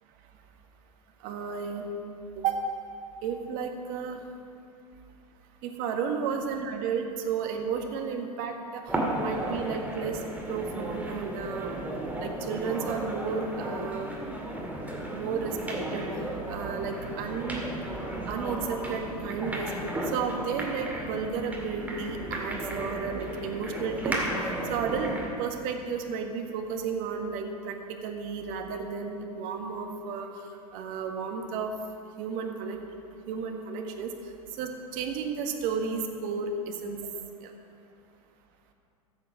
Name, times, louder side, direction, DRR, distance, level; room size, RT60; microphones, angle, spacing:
voice 1, 1.2-1.9 2.3-2.6 3.2-4.2 5.6-8.8 9.2-10.2 10.5-11.7 12.2-14.1 15.1-16.1 16.5-17.7 18.3-19.7 20.1-24.2 24.7-25.1 25.4-27.8 28.0-30.3 30.7-31.7 32.2-32.8 33.3-34.1 34.6-37.0 37.4-37.5, right 6 dB, 45° right, 4 dB, 1.6 m, -32 dB
sound 1, 8.9-25.4, right 1 dB, 10° right, 2.2 m, -34 dB
14.5 x 7.6 x 6.2 m, 2.5 s
hypercardioid pair, 95°, 20 cm